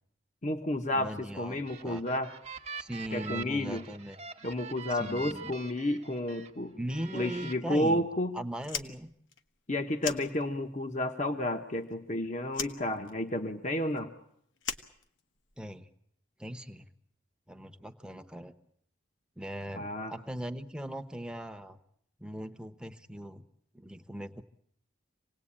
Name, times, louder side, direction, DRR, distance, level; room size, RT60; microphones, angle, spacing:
voice 1, 0.4-2.3 3.1-3.9 4.4-6.7 7.1-8.4 9.7-14.1 19.7-20.1, left 1 dB, 35° left, 5 dB, 1.1 m, -31 dB
voice 2, 0.9-2.0 2.8-4.2 4.9-5.5 6.7-8.1 8.3-9.1 15.6-15.9 16.4-16.9 17.5-18.5 19.4-21.8 22.2-23.4 23.7-24.4, equal, 5° right, 8 dB, 1.0 m, -39 dB
sound 1, 1.4-6.5 6.9-7.5, right 5 dB, 30° right, 0.9 m, -44 dB
Fire, 8.6-10.9 11.1-12.1 12.5-15.7, left 7 dB, 70° left, 1.3 m, -40 dB
27.0 x 19.0 x 8.7 m, 0.72 s
head